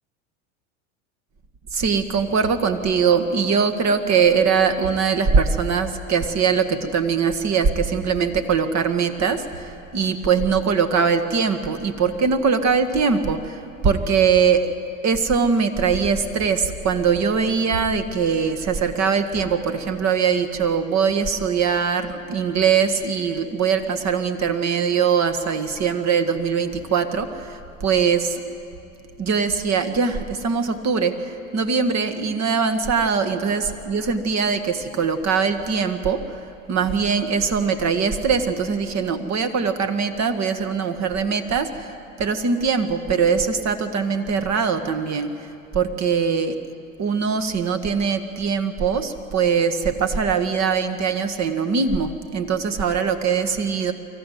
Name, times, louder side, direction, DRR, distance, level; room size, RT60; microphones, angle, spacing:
voice 1, 1.7-14.7 15.0-28.4 29.2-36.4 36.7-46.6 47.0-53.9, right 6 dB, 40° right, 9 dB, 1.8 m, -22 dB
23.5 x 15.0 x 9.4 m, 2.6 s
hypercardioid pair, 85°, 41 cm